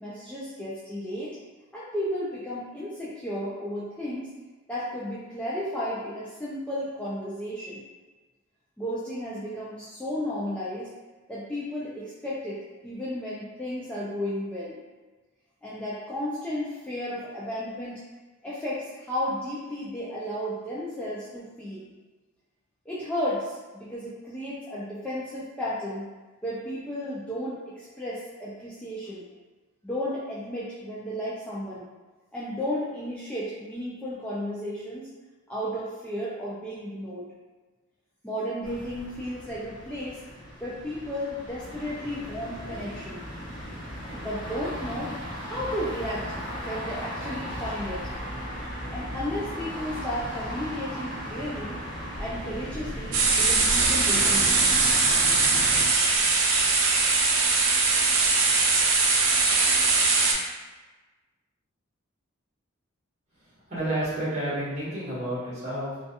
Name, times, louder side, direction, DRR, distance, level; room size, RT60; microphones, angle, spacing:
voice 1, 0.0-1.4 1.7-4.3 4.7-7.8 8.8-10.9 11.3-14.8 15.6-18.0 18.4-21.8 22.9-26.1 26.4-29.2 29.8-31.9 32.3-35.1 35.5-37.3 38.2-40.2 40.6-43.2 44.1-45.2 45.4-46.3 46.7-48.1 48.9-51.8 52.2-54.7, equal, 5° left, -9 dB, 0.3 m, -33 dB
sound 1, 38.6-55.8, equal, 25° left, 0.8 m, -36 dB
sound 2, 53.1-60.3, right 4 dB, 90° right, 0.4 m, -21 dB
voice 2, 63.3-66.0, right 1 dB, 35° right, -9 dB, 1.2 m, -31 dB
2.3 x 2.3 x 2.7 m, 1.2 s
head